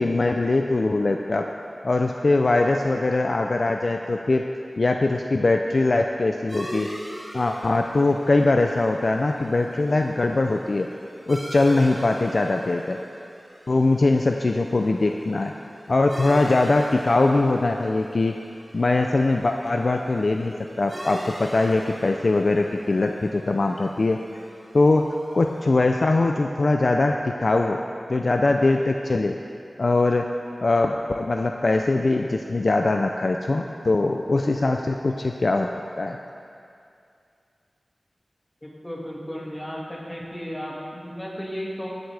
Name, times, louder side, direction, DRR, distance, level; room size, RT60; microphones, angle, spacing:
voice 1, 0.0-1.4 1.8-4.4 4.8-6.9 7.3-10.9 11.3-13.0 13.7-15.5 15.9-18.3 18.7-24.2 24.7-25.0 25.3-27.8 28.1-29.4 29.8-30.3 30.6-35.7 36.0-36.2, left 2 dB, 60° left, 3 dB, 0.4 m, -21 dB
sound 1, 6.5-25.6, equal, 25° right, 2.7 m, -42 dB
voice 2, 38.6-41.9, equal, 20° left, -4 dB, 2.1 m, -34 dB
16.0 x 8.1 x 3.4 m, 2.5 s
wide cardioid pair, 70°, 0 cm